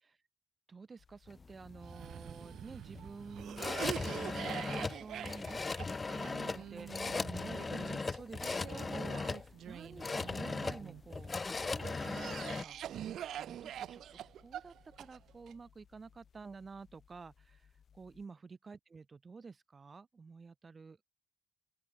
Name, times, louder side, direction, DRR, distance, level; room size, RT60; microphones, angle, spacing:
voice 1, 0.7-11.4 11.9-14.0 14.3-21.1, right 4 dB, 35° right, 1.2 m, -51 dB
sound 1, 1.0-18.3, left 7 dB, 55° left, 6.4 m, -65 dB
sound 2, 1.3-12.6, left 4 dB, 30° left, 1.4 m, -39 dB
Cough, 1.8-11.0 11.6-15.5, right 11 dB, 80° right, 1.3 m, -45 dB
open air
cardioid pair, 100°, 0 cm